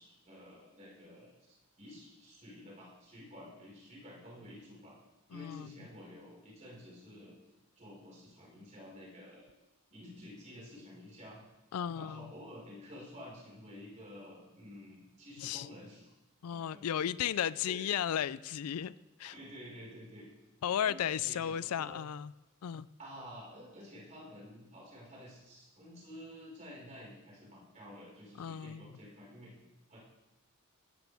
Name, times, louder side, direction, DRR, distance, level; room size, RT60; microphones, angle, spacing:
voice 1, 0.0-4.9 5.3-7.3 7.8-9.5 9.9-11.4 12.0-16.1 16.5-16.8 17.7-17.9 19.2-20.3 20.6-22.0 23.0-29.6 29.9-30.0, left 1 dB, 35° right, -4 dB, 4.8 m, -51 dB
voice 2, 5.3-5.7 11.7-12.3 15.4-15.7 16.4-18.9 19.2-19.3 20.6-22.3 22.6-22.9 28.4-28.9, left 9 dB, 85° left, 19 dB, 0.4 m, -34 dB
20.0 x 12.0 x 3.5 m, 1.0 s
head